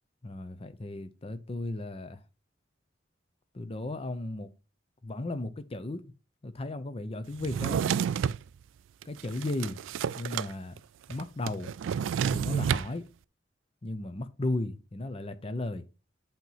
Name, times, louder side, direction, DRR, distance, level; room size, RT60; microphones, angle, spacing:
voice 1, 0.2-2.2 3.5-4.5 5.0-6.1 6.4-7.8 9.1-9.8 10.1-10.8 11.1-11.7 12.3-13.1 13.8-15.9, left 2 dB, 30° left, 0.7 m, -35 dB
Drawer open or close, 7.4-8.4 9.0-10.5 10.8-10.9 11.1-12.9, right 7 dB, 85° right, 0.3 m, -30 dB
8.8 x 3.0 x 5.5 m
head